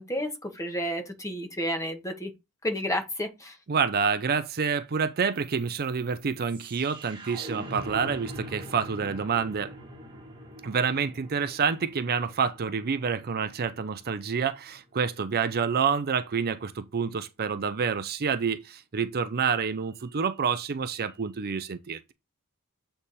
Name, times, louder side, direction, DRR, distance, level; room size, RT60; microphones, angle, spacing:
voice 1, 0.0-2.3 2.6-3.5, equal, 15° left, 1.5 m, -31 dB
voice 2, 3.7-9.7 10.6-22.1, right 6 dB, 45° right, 0.5 m, -28 dB
sound 1, 5.3-15.4, equal, 25° right, 1.8 m, -43 dB
8.4 x 3.4 x 4.2 m
head